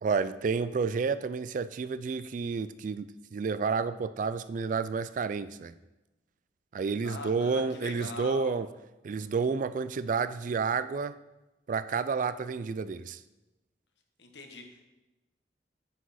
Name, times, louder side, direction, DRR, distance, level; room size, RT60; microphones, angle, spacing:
voice 1, 0.0-5.7 6.7-8.7 9.0-11.1 11.7-13.2, right 5 dB, 45° right, 14 dB, 0.3 m, -30 dB
voice 2, 7.0-8.6 14.2-14.8, left 3 dB, 75° left, 4 dB, 1.2 m, -42 dB
9.3 x 6.1 x 4.2 m, 1.0 s
head